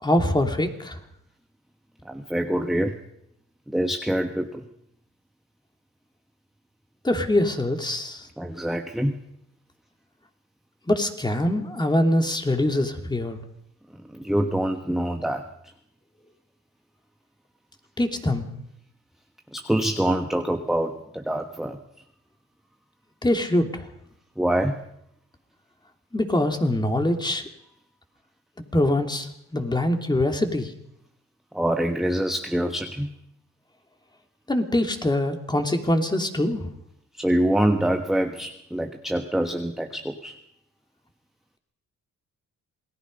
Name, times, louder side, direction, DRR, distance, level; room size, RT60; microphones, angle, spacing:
voice 1, 0.0-1.0 7.0-8.3 10.9-13.4 18.0-18.5 23.2-23.9 26.1-27.4 28.7-30.7 34.5-36.7, left 1 dB, 15° left, 4 dB, 3.0 m, -23 dB
voice 2, 2.0-3.0 3.7-4.7 8.4-9.2 14.1-15.4 19.5-21.8 24.4-24.8 31.5-33.2 37.1-40.3, right 1 dB, ahead, 5 dB, 1.2 m, -25 dB
27.5 x 18.5 x 5.5 m, 0.76 s
cardioid pair, 90°, 30 cm